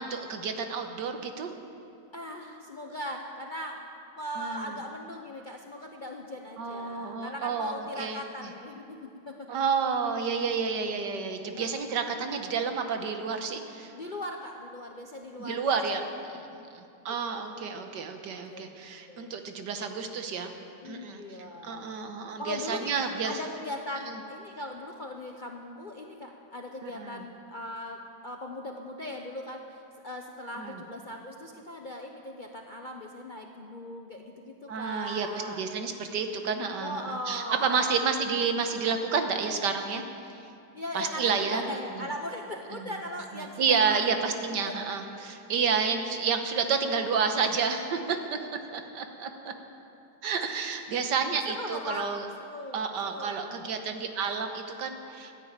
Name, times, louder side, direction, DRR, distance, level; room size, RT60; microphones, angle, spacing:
voice 1, 0.0-1.5 4.4-4.8 6.6-8.5 9.5-13.9 15.4-16.5 16.7-20.5 20.8-21.2 21.6-23.4 24.0-24.2 26.8-27.2 30.6-30.8 34.7-40.0 40.9-42.1 42.7-42.9 43.3-48.4 48.7-49.5 50.2-52.3 52.7-55.3, right 5 dB, 75° right, 6 dB, 1.7 m, -30 dB
voice 2, 2.1-3.9 4.2-9.6 11.5-11.7 13.9-15.8 16.3-16.5 17.1-17.2 18.5-18.7 19.1-19.4 20.8-22.0 22.4-35.6 36.8-38.0 40.7-44.0 44.7-44.8 51.6-52.1 52.4-53.7, left 1 dB, 45° left, 1 dB, 0.7 m, -39 dB
15.0 x 9.8 x 8.7 m, 2.6 s
omnidirectional pair, 1.9 m